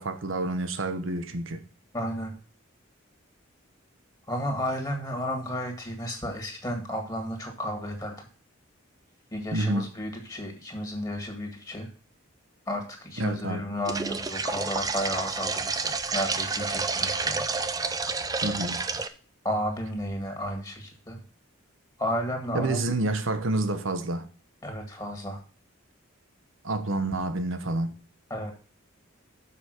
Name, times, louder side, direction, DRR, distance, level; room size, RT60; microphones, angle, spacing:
voice 1, 0.0-1.6 9.5-9.9 13.2-13.6 18.4-18.8 22.5-24.3 26.6-28.0, right 2 dB, 70° right, 1.1 m, -28 dB
voice 2, 1.9-2.3 4.3-8.2 9.3-11.9 12.7-17.4 19.4-21.2 22.0-22.8 24.6-25.4 28.3-28.5, equal, 20° left, 1.9 m, -32 dB
sound 1, 13.8-19.1, right 4 dB, 15° right, 0.5 m, -29 dB
7.0 x 5.2 x 6.4 m
head